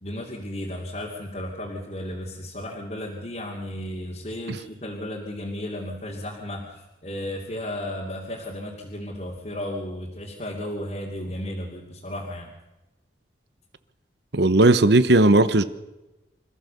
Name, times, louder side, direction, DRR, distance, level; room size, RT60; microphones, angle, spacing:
voice 1, 0.0-12.5, left 1 dB, 40° left, 2.8 m, -34 dB
voice 2, 14.3-15.6, right 2 dB, 70° right, 1.0 m, -16 dB
26.5 x 15.0 x 6.9 m
head